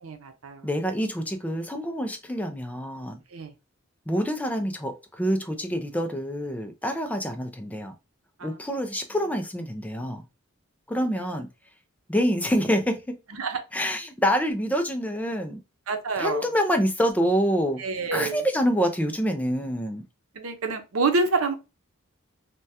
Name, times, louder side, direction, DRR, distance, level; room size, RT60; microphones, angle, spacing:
voice 1, 0.0-0.7 3.3-3.5 8.4-8.6 11.2-11.4 13.4-13.6 15.9-16.4 17.8-18.4 20.4-21.5, right 3 dB, 80° right, 0.7 m, -27 dB
voice 2, 0.6-3.2 4.1-7.9 8.4-10.2 10.9-11.5 12.1-13.2 13.7-15.6 16.2-17.8 18.1-20.0, equal, 5° left, 0.4 m, -26 dB
3.3 x 2.2 x 2.7 m
head